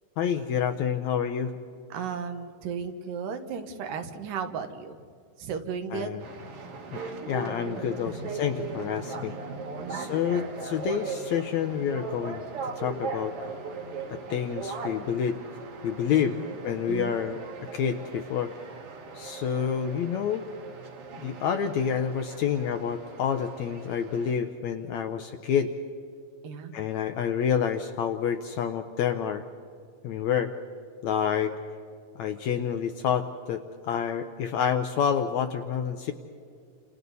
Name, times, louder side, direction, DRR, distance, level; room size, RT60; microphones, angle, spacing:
voice 1, 0.2-1.5 5.9-6.2 6.9-9.3 9.9-12.4 12.8-13.3 14.1-15.4 15.8-17.4 17.7-18.5 19.1-20.4 21.2-25.7 26.7-29.4 30.0-30.5 31.0-31.5 32.1-36.1, left 8 dB, 75° left, 7 dB, 1.7 m, -28 dB
voice 2, 1.9-5.0 5.4-6.1 8.0-8.2 8.7-8.9 9.8-10.1 16.1-16.6 16.9-17.2 26.4-26.7, right 6 dB, 75° right, 7 dB, 2.8 m, -35 dB
sound 1, 6.2-24.3, right 4 dB, 50° right, 2.3 m, -39 dB
30.0 x 27.5 x 4.1 m, 2.3 s
omnidirectional pair, 3.9 m